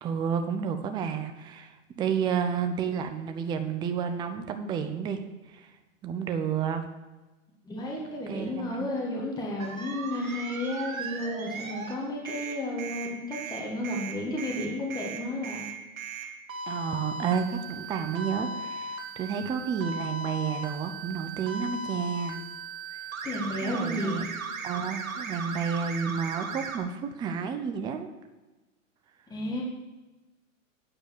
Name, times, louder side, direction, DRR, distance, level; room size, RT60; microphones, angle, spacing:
voice 1, 0.0-5.2 5.5-5.7 6.0-6.9 8.3-8.9 16.7-22.4 22.9-23.0 23.6-24.3 24.6-28.1, right 7 dB, 10° right, 7 dB, 0.5 m, -31 dB
voice 2, 7.6-15.6 23.2-24.2 29.3-29.6, left 1 dB, 10° left, -2 dB, 1.7 m, -32 dB
sound 1, 9.6-12.0 12.3-26.8, right 4 dB, 80° right, 2.1 m, -37 dB
9.2 x 6.8 x 7.1 m, 1.1 s
hypercardioid pair, 135°, 40 cm